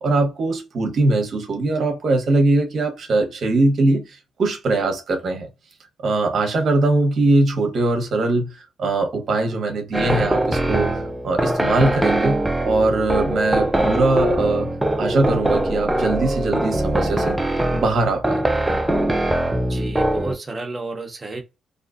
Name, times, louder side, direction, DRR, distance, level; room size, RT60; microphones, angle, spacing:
voice 1, 0.0-5.5 6.0-14.7 15.0-17.4 17.7-18.4, right 2 dB, 55° right, 0.9 m, -21 dB
sound 1, 9.9-20.4, right 1 dB, 10° right, 0.3 m, -22 dB
voice 2, 19.6-21.4, right 3 dB, 25° right, 0.8 m, -32 dB
2.5 x 2.3 x 2.4 m
cardioid pair, 90°, 0 cm